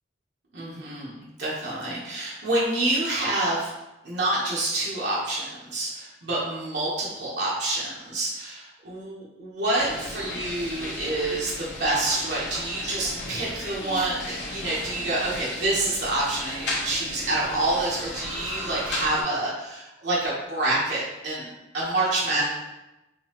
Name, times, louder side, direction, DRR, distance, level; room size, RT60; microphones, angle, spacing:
voice 1, 0.5-3.7 4.0-22.5, right 2 dB, 70° right, -7 dB, 0.9 m, -27 dB
sound 1, 9.8-19.2, left 2 dB, 75° left, 0.8 m, -35 dB
3.8 x 2.7 x 2.9 m, 0.97 s
head